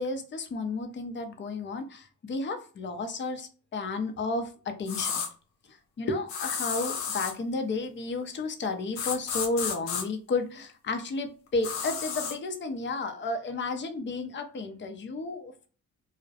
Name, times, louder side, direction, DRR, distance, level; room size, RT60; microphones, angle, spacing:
voice 1, 0.0-5.2 5.7-15.7, left 3 dB, 30° left, 0.5 m, -32 dB
sound 1, 4.9-5.3 6.3-7.4 9.0-10.0 11.6-12.4, left 7 dB, 85° left, 0.6 m, -32 dB
2.2 x 2.0 x 2.7 m
hypercardioid pair, 45°, 41 cm